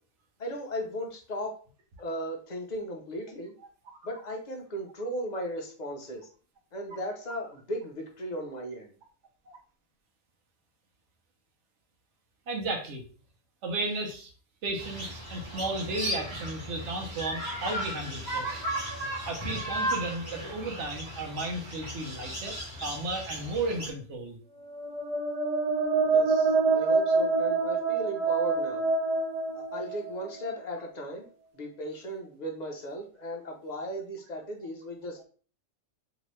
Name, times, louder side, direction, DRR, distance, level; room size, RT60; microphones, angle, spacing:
voice 1, 0.4-1.5 2.0-3.5 4.0-6.3 6.7-8.9 26.0-28.9 29.5-35.2, equal, 45° left, 1 dB, 0.7 m, -36 dB
voice 2, 12.5-13.0 13.6-14.3 14.6-18.6 19.3-24.4, right 2 dB, 65° right, 2 dB, 1.0 m, -34 dB
sound 1, 14.8-23.9, right 1 dB, 25° right, 1.4 m, -35 dB
sound 2, 24.7-30.5, right 4 dB, 50° right, 0.4 m, -26 dB
2.9 x 2.6 x 3.0 m, 0.40 s
omnidirectional pair, 1.3 m